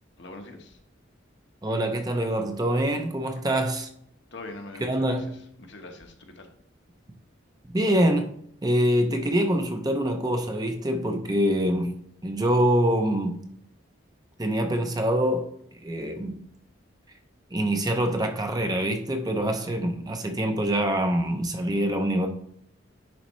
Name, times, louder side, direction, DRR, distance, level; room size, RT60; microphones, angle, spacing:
voice 1, 0.2-0.8 4.3-5.3 5.6-6.5, left 2 dB, 60° left, 1.1 m, -42 dB
voice 2, 1.6-3.9 4.8-5.3 7.7-8.3 8.6-11.9 12.2-13.4 14.4-15.5 15.8-16.4 17.5-22.3, right 1 dB, 20° right, 0.6 m, -25 dB
10.5 x 4.2 x 3.1 m
head